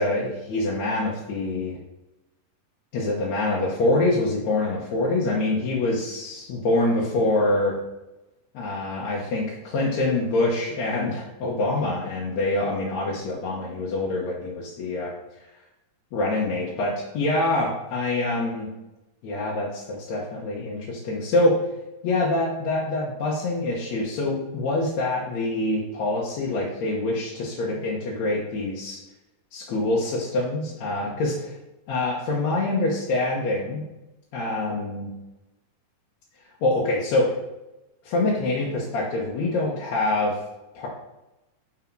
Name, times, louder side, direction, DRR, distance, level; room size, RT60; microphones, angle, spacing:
voice 1, 0.0-1.8 2.9-7.8 8.5-15.1 16.1-18.7 19.2-21.6 22.0-29.0 29.5-31.5 31.9-33.8 34.3-35.1 36.6-37.3 38.0-40.4 40.8-40.9, left 2 dB, 65° left, -4 dB, 2.1 m, -25 dB
7.8 x 4.8 x 4.6 m, 0.97 s
omnidirectional pair, 3.8 m